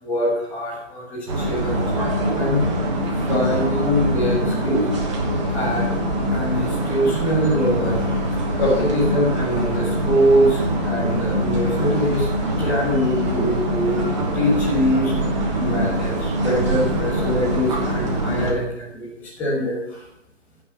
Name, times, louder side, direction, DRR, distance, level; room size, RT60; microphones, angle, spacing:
voice 1, 0.0-1.8 2.3-2.6 3.1-4.8 5.5-5.9 6.3-8.0 8.3-12.3 12.6-14.0 14.3-15.3 15.6-20.0, equal, 5° left, -6 dB, 1.3 m, -23 dB
sound 1, 1.3-18.5, right 1 dB, 25° right, 2.0 m, -23 dB
15.5 x 5.6 x 6.6 m, 0.87 s
hypercardioid pair, 165°, 38 cm